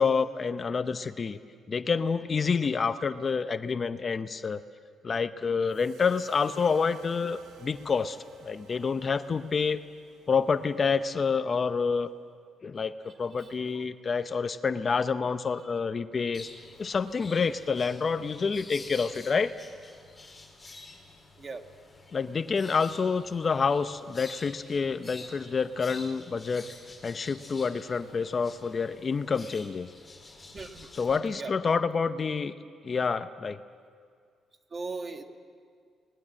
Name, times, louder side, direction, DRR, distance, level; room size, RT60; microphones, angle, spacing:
voice 1, 0.0-1.4 1.7-4.6 5.0-8.2 8.4-9.8 10.3-12.1 12.6-12.9 13.2-16.5 16.8-19.5 22.1-26.7 27.0-29.9 31.0-32.5 32.8-33.6, left 5 dB, 40° left, 11 dB, 0.8 m, -28 dB
sound 1, 5.7-12.0, right 3 dB, 80° right, 4.8 m, -57 dB
sound 2, 16.3-31.2, left 3 dB, 20° left, 4.7 m, -49 dB
voice 2, 30.5-30.9 31.3-31.5 34.7-35.2, right 4 dB, 35° right, 6 dB, 1.9 m, -38 dB
29.5 x 20.5 x 7.6 m, 2.2 s
cardioid pair, 90°, 0 cm